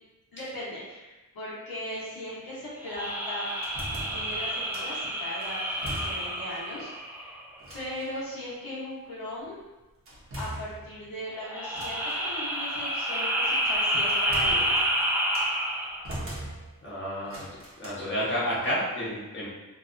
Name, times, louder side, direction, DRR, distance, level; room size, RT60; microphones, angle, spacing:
voice 1, 0.3-3.5 4.0-7.4 7.7-9.6 10.4-15.0, left 1 dB, 80° left, -8 dB, 0.9 m, -38 dB
sound 1, 2.8-7.6 11.4-16.1, equal, 5° right, 0.4 m, -29 dB
sound 2, 3.5-5.0 5.4-6.5 6.8-6.9 7.6-8.2 10.1-11.2 11.7-12.3 13.4-15.6 16.0-16.9 17.2-17.9, right 1 dB, 40° right, 0.8 m, -41 dB
voice 2, 16.8-17.5 17.8-19.5, equal, 35° left, -8 dB, 1.0 m, -30 dB
2.7 x 2.1 x 2.5 m, 1.1 s
cardioid pair, 80°, 35 cm